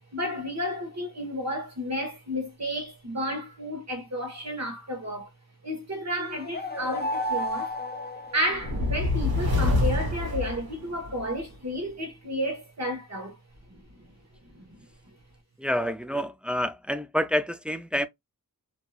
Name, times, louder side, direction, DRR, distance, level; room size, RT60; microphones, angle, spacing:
voice 1, 0.1-5.3 5.6-7.8 8.3-13.4 13.7-14.1 14.5-14.8, equal, 45° right, 1.4 m, -32 dB
sound 1, 6.2-9.1, equal, 30° left, 0.6 m, -33 dB
sound 2, 8.5-11.3, left 2 dB, 80° right, 1.4 m, -26 dB
voice 2, 15.6-18.1, equal, 5° right, 0.3 m, -28 dB
2.9 x 2.7 x 2.3 m
cardioid pair, 55°, 36 cm